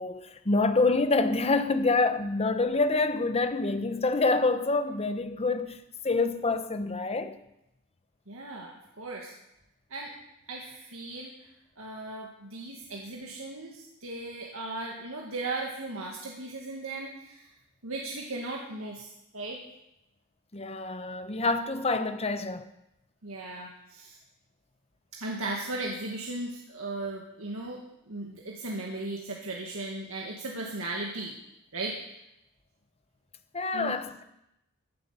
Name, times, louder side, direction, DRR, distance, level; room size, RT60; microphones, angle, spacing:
voice 1, 0.0-7.4 20.5-22.7 33.5-34.2, left 3 dB, 30° left, 1.0 m, -27 dB
voice 2, 8.3-9.3 9.9-10.1 10.5-11.3 11.8-17.5 17.8-19.6 23.2-24.2 25.2-27.8 28.1-31.3 31.7-32.0 33.7-34.0, right 2 dB, 70° right, 2.0 m, -37 dB
16.0 x 9.7 x 6.9 m
head